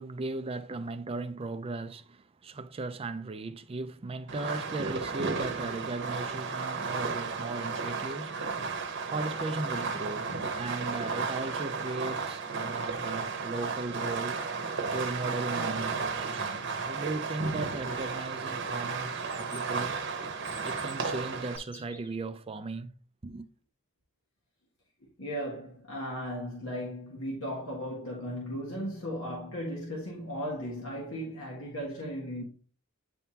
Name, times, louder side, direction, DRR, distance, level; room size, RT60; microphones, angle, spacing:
voice 1, 0.0-8.5 9.1-14.4 14.9-20.0 20.6-22.9 23.2-23.5, right 3 dB, 25° right, 0.4 m, -37 dB
Fireworks, 4.3-21.6, right 4 dB, 60° right, 0.9 m, -34 dB
Chirp tweet, 19.2-22.2, left 1 dB, 10° left, 1.4 m, -50 dB
voice 2, 25.2-32.4, equal, 75° left, 1.7 m, -36 dB
9.2 x 3.6 x 2.8 m
head